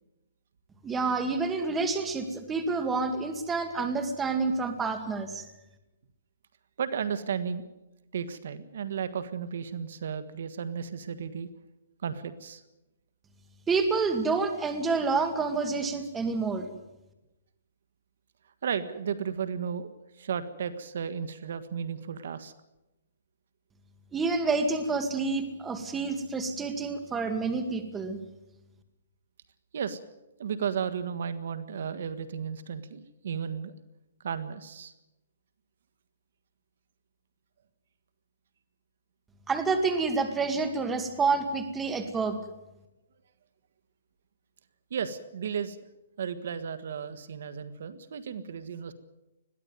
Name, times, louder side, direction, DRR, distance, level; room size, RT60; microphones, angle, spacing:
voice 1, 0.8-5.5 13.7-16.7 24.1-28.2 39.5-42.4, right 4 dB, 10° right, 7 dB, 2.0 m, -28 dB
voice 2, 6.8-7.7 8.1-11.5 12.0-12.6 18.6-19.9 20.2-22.5 29.7-30.0 30.4-33.7 34.2-34.9 44.9-45.9 46.2-48.9, right 7 dB, 60° right, 12 dB, 1.6 m, -34 dB
21.0 x 15.0 x 9.4 m, 0.97 s
hypercardioid pair, 160°, 0 cm